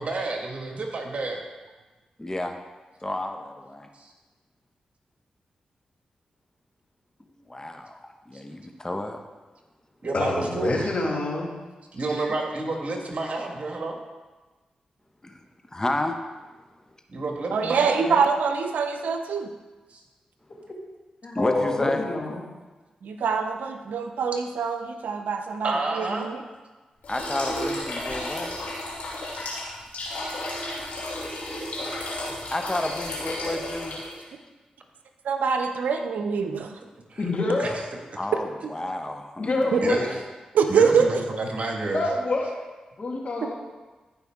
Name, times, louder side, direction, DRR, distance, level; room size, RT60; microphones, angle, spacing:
voice 1, 0.0-1.4 4.0-4.1 10.0-10.9 11.9-14.0 17.1-18.2 19.9-20.0 25.6-26.3 29.4-29.5 37.1-37.2 37.6-37.8 39.8-40.2 40.7-42.0, right 2 dB, 55° right, 1 dB, 1.7 m, -29 dB
voice 2, 2.2-2.5 3.0-3.9 7.5-9.2 15.2-15.4 15.7-16.2 21.3-22.0 27.1-28.6 32.5-34.0 38.2-39.5 39.9-40.0, left 1 dB, 25° left, 5 dB, 1.0 m, -30 dB
voice 3, 10.1-11.5 21.2-22.4 37.2-37.7 39.4-40.2 41.9-42.5 43.0-43.5, left 2 dB, 55° left, -2 dB, 2.3 m, -26 dB
voice 4, 17.5-19.5 23.0-26.4 35.2-36.7 39.7-39.8 40.5-41.1, right 6 dB, 80° right, 6 dB, 0.7 m, -24 dB
sound 1, 27.0-34.2, left 1 dB, 80° left, 2.5 m, -33 dB
14.5 x 5.3 x 3.6 m, 1.2 s
supercardioid pair, 40°, 3 cm